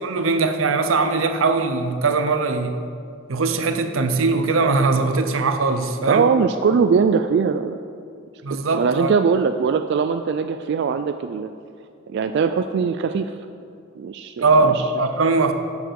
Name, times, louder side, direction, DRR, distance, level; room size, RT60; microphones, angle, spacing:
voice 1, 0.0-2.8 3.3-6.3 8.4-9.1 14.4-15.5, right 3 dB, 90° right, 8 dB, 0.7 m, -20 dB
voice 2, 6.1-7.8 8.5-11.5 12.1-13.3 14.0-14.8, right 5 dB, 60° right, 8 dB, 0.3 m, -21 dB
10.0 x 7.1 x 4.7 m, 2.4 s
head